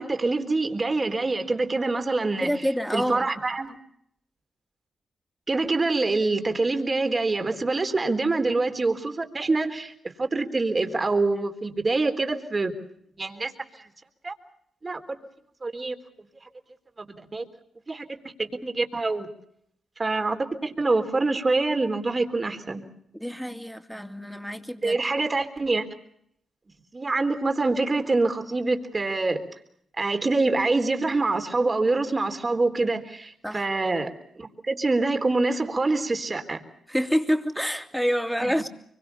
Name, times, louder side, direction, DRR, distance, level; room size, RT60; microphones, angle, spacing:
voice 1, 0.0-2.5 2.9-3.8 5.5-9.9 10.2-12.7 13.2-13.5 14.2-14.3 14.8-15.0 15.6-15.9 17.0-17.4 17.9-18.0 18.4-19.3 20.0-22.8 24.8-25.9 26.9-29.4 30.0-36.6 38.4-38.5, right 3 dB, 35° right, 6 dB, 3.8 m, -25 dB
voice 2, 2.4-3.3 23.1-25.0 33.4-33.7 36.9-38.7, equal, ahead, 6 dB, 2.9 m, -27 dB
24.5 x 23.0 x 7.0 m, 0.71 s
supercardioid pair, 50°, 0 cm